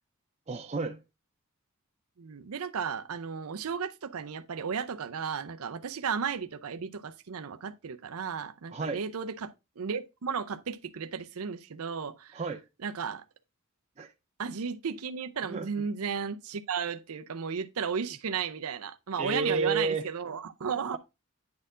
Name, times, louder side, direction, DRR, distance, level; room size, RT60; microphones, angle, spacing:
voice 1, 0.5-1.0 8.7-9.0 12.3-12.6 14.0-14.1 15.5-15.7 19.2-20.0, right 4 dB, 30° right, 0.5 m, -31 dB
voice 2, 2.2-9.5 9.8-12.4 12.8-13.2 14.4-21.0, right 6 dB, 85° right, 0.6 m, -34 dB
9.4 x 4.4 x 3.7 m
head